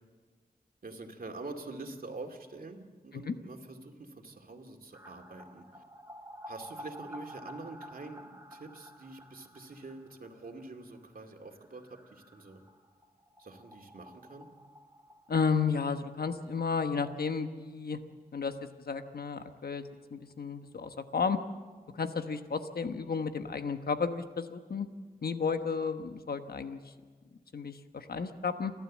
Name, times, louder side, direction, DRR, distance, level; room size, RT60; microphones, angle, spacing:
voice 1, 0.8-5.8 6.5-12.6 13.4-14.5, right 3 dB, 65° right, 3 dB, 2.4 m, -46 dB
sound 1, 4.9-16.5 16.8-16.9 17.2-17.3 20.3-20.4 20.6-20.7 21.0-22.7 23.1-23.2, equal, 15° right, 2.2 m, -52 dB
voice 2, 15.3-18.0 18.3-21.4 21.9-24.9 25.2-26.8 27.5-28.7, left 5 dB, 80° left, 8 dB, 1.2 m, -32 dB
29.5 x 12.0 x 7.4 m, 1.4 s
wide cardioid pair, 60°, 16 cm